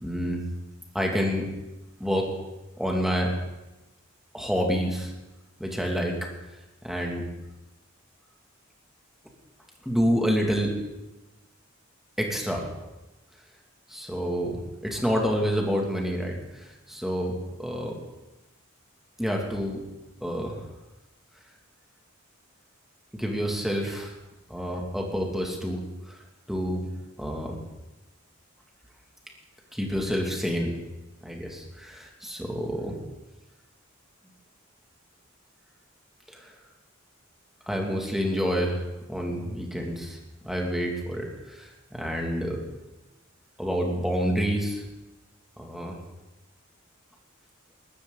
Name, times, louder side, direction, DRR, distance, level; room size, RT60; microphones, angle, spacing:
voice 1, 0.0-0.4 0.9-1.5 2.0-2.3 2.8-3.3 4.3-5.1 5.6-6.1 6.8-7.2 9.9-10.7 12.2-12.7 13.9-16.4 16.9-17.3 17.6-17.9 19.2-19.8 20.2-20.6 23.1-24.1 24.5-26.2 26.5-26.8 27.2-27.6 29.7-30.8 31.2-33.0 36.3-36.5 37.7-38.8 39.1-40.2 40.4-42.6 43.6-44.8 45.6-46.0, equal, ahead, 0 dB, 2.3 m, -28 dB
20.5 x 13.5 x 3.9 m, 1.0 s
head